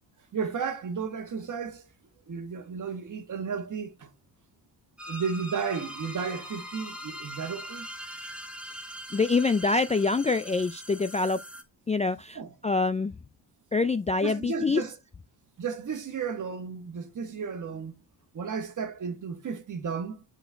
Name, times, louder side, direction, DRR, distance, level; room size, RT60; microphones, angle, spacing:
voice 1, 0.3-1.9 2.3-4.1 5.1-7.9 12.3-12.5 14.2-15.0 15.6-17.9 18.3-20.2, right 6 dB, 45° right, 1.4 m, -33 dB
sound 1, 5.0-11.6, equal, 5° right, 1.1 m, -41 dB
voice 2, 9.1-11.4 11.9-12.4 12.6-13.1 13.7-14.8, left 3 dB, 20° left, 0.3 m, -25 dB
8.1 x 4.4 x 4.4 m
wide cardioid pair, 135°, 41 cm